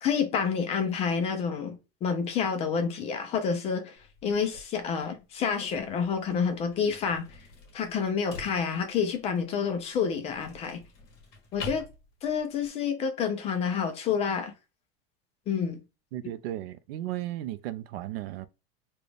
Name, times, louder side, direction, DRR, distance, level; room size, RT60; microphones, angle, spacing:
voice 1, 0.0-4.0 4.2-7.2 7.7-10.8 11.5-11.9 12.2-14.5 15.5-15.8, left 6 dB, 20° left, 0.4 m, -28 dB
sound 1, 4.0-12.7, left 4 dB, 45° left, 1.7 m, -47 dB
voice 2, 16.1-18.5, right 13 dB, 75° right, 0.5 m, -35 dB
4.0 x 2.3 x 3.3 m
supercardioid pair, 160°, 31 cm